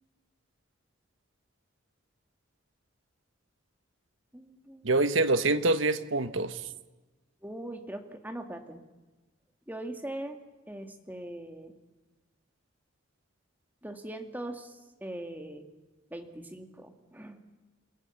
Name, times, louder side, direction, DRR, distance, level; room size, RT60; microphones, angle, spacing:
voice 1, 4.3-5.0 7.4-8.8 9.7-10.4 10.7-11.7 13.8-15.6 16.1-17.4, right 1 dB, 10° right, 5 dB, 2.2 m, -41 dB
voice 2, 4.8-6.6, right 2 dB, 70° right, 11 dB, 1.3 m, -25 dB
29.5 x 19.0 x 7.2 m, 1.1 s
head